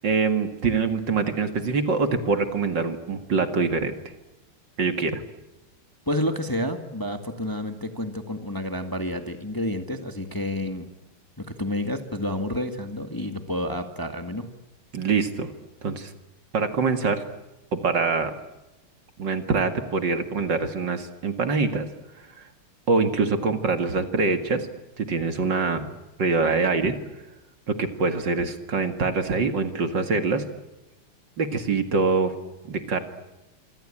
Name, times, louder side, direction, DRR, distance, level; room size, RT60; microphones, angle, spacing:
voice 1, 0.0-3.9 4.8-5.2 14.9-15.5 15.8-16.1 16.5-17.2 17.7-18.3 19.2-21.9 22.9-24.7 25.0-25.9 26.2-27.0 27.7-30.4 31.4-32.3 32.7-33.0, right 4 dB, 55° right, 8 dB, 2.7 m, -24 dB
voice 2, 6.1-10.9 11.4-14.5, left 1 dB, 10° left, 6 dB, 1.9 m, -29 dB
27.0 x 25.0 x 8.8 m, 1.0 s
omnidirectional pair, 2.3 m